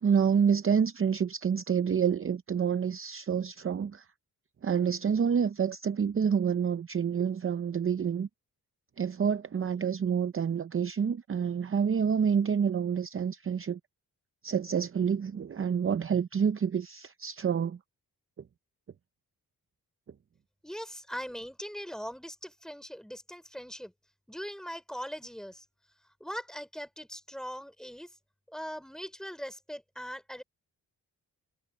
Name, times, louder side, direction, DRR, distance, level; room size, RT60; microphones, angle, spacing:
voice 1, 0.0-4.1 4.6-8.3 9.0-13.8 14.4-17.8, right 7 dB, 35° right, 0.6 m, -28 dB
voice 2, 20.6-23.9 24.3-25.6 26.2-28.1 28.5-30.4, equal, ahead, 4.4 m, -40 dB
cardioid pair, 90°, 37 cm